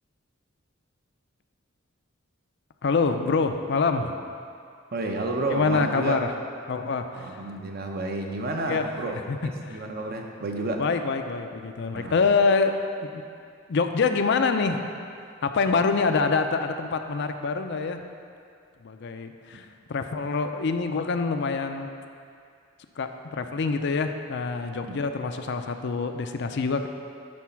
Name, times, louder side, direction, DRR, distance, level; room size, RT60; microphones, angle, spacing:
voice 1, 2.8-4.1 5.5-6.3 6.7-7.4 8.6-8.9 9.3-9.4 9.6-9.8 10.8-13.2 13.7-14.8 15.4-18.0 18.8-21.9 23.0-26.9, left 4 dB, 60° left, 7 dB, 0.5 m, -26 dB
voice 2, 4.9-6.2 7.1-9.3 9.7-10.9 11.9-12.2 24.9-25.1, right 2 dB, 50° right, 2 dB, 0.9 m, -30 dB
10.5 x 4.1 x 5.8 m, 2.4 s
head